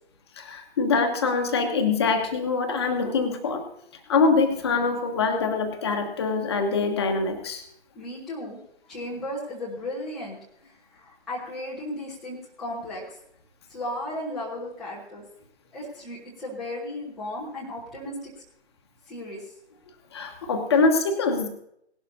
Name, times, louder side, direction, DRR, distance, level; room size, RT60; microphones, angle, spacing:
voice 1, 0.4-3.6 4.1-7.6 20.1-21.5, left 4 dB, 25° left, 5 dB, 1.1 m, -24 dB
voice 2, 7.9-8.6 8.9-10.4 10.9-13.2 13.7-15.2 15.7-18.1 19.1-19.4, left 1 dB, ahead, -8 dB, 0.7 m, -35 dB
18.0 x 11.5 x 2.7 m, 0.72 s
figure-of-eight pair, 145°, 33 cm